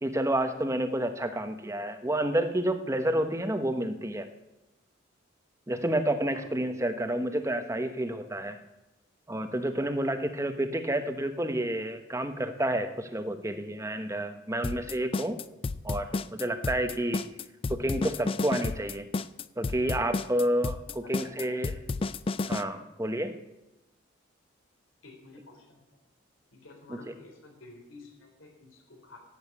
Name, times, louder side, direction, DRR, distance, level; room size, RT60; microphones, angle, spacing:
voice 1, 0.0-4.3 5.7-8.6 9.3-15.4 15.8-17.2 17.7-19.1 19.6-21.7 22.5-23.4 26.9-27.0, right 1 dB, 15° right, 8 dB, 1.0 m, -30 dB
sound 1, 14.6-22.6, left 3 dB, 30° left, 0.3 m, -31 dB
voice 2, 21.2-21.5 25.0-25.8 26.5-29.2, left 3 dB, 85° left, 2 dB, 3.5 m, -51 dB
11.0 x 8.8 x 8.5 m, 0.96 s
head